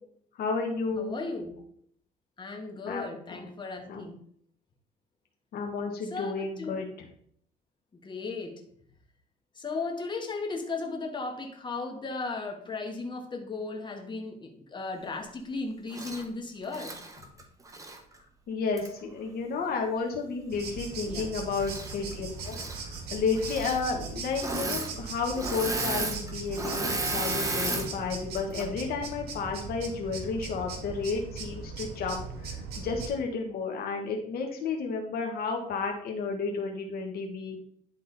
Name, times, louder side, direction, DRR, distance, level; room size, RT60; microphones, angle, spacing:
voice 1, 0.4-1.2 2.8-3.1 3.3-3.4 3.9-4.0 5.5-6.9 18.5-37.6, left 4 dB, 65° left, 2 dB, 1.3 m, -32 dB
voice 2, 1.0-1.6 2.4-4.2 6.1-6.8 8.0-8.6 9.5-17.0 21.0-21.3, left 3 dB, 25° left, 1 dB, 1.6 m, -36 dB
Engine / Mechanisms, 15.9-16.2 16.7-18.0 18.8-18.9 21.6-22.1 22.4-22.8 23.3-23.8 24.3-24.9 25.2-27.9 28.4-28.6, right 2 dB, 20° right, 1.2 m, -33 dB
sound 1, 20.5-33.1, right 4 dB, 70° right, 1.7 m, -39 dB
10.5 x 3.7 x 4.1 m, 0.63 s
cardioid pair, 110°, 17 cm